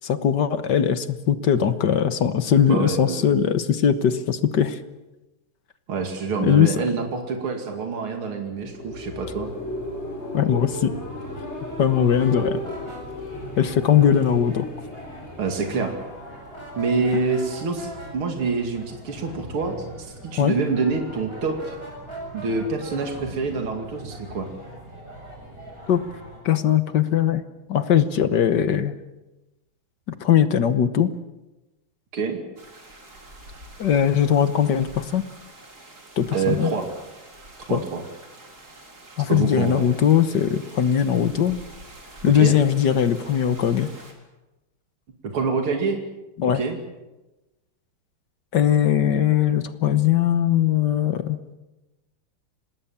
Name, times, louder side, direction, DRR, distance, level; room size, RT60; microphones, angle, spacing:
voice 1, 0.0-4.8 6.4-6.8 10.3-10.9 11.8-12.6 13.6-14.7 20.4-20.5 25.9-26.0 26.4-27.4 27.7-28.9 30.1-31.1 33.8-35.2 36.2-36.7 37.7-37.8 39.2-41.6 42.2-43.9 46.4-46.6 48.5-51.4, left 9 dB, 55° left, 11 dB, 1.6 m, -20 dB
voice 2, 2.7-3.2 5.9-9.5 15.4-15.9 16.8-21.8 22.3-24.5 32.1-32.4 36.3-36.9 37.7-38.0 39.3-39.9 42.3-42.6 45.3-46.0 46.5-46.8, right 4 dB, 75° right, 3 dB, 3.3 m, -26 dB
sound 1, 8.4-17.0, left 1 dB, 30° left, 4.7 m, -35 dB
sound 2, 12.1-26.4, equal, 25° right, 6.8 m, -41 dB
sound 3, 32.6-44.1, right 1 dB, 45° right, 4.4 m, -46 dB
26.0 x 19.5 x 7.3 m, 1.0 s
omnidirectional pair, 2.4 m